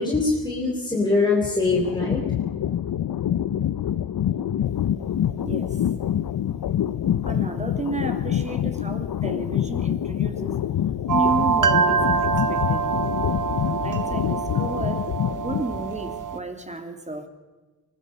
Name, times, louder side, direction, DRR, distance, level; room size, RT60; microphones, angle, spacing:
voice 1, 0.0-2.2, left 3 dB, 10° left, -3 dB, 4.3 m, -22 dB
sound 1, 1.7-15.9, left 10 dB, 80° left, 0.7 m, -26 dB
voice 2, 5.4-5.8 7.2-10.6 11.1-13.0 13.6-17.3, right 2 dB, 20° right, 6 dB, 2.9 m, -33 dB
sound 2, 11.1-16.4, right 6 dB, 60° right, 1.4 m, -25 dB
24.0 x 20.0 x 5.4 m, 1.3 s
wide cardioid pair, 90°, 36 cm